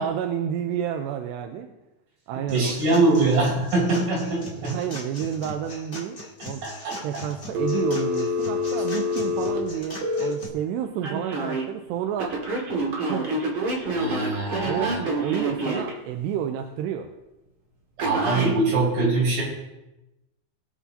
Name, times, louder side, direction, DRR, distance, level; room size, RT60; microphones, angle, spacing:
voice 1, 0.0-1.7 2.3-2.8 4.7-6.2 6.4-6.6 7.0-12.4 13.0-13.4 14.5-17.1, right 9 dB, 85° right, 5 dB, 2.8 m, -30 dB
sound 1, 2.5-10.5, left 2 dB, 30° left, 1.2 m, -40 dB
voice 2, 2.5-4.7 6.6-7.0 13.9-15.0 18.0-19.4, right 2 dB, 65° right, -6 dB, 7.2 m, -23 dB
Telephone, 7.5-10.3 11.0-11.6 12.2-15.9 18.0-18.5, equal, 40° right, 2.1 m, -27 dB
22.5 x 8.5 x 2.8 m, 0.97 s
omnidirectional pair, 4.8 m